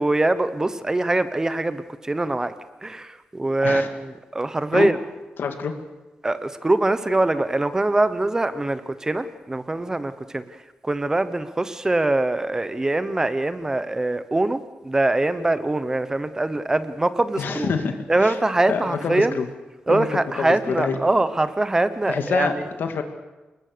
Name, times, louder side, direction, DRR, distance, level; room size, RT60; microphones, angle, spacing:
voice 1, 0.0-2.5 2.8-5.0 6.2-10.4 10.8-17.7 18.1-19.3 19.9-22.6, right 2 dB, 15° right, 12 dB, 0.9 m, -23 dB
voice 2, 5.4-5.7 17.4-18.4 18.7-19.5 19.9-20.1 20.4-21.0 22.1-22.5 22.8-23.0, left 6 dB, 75° left, 6 dB, 2.4 m, -26 dB
26.5 x 21.5 x 6.8 m, 1.1 s
wide cardioid pair, 155°, 4 cm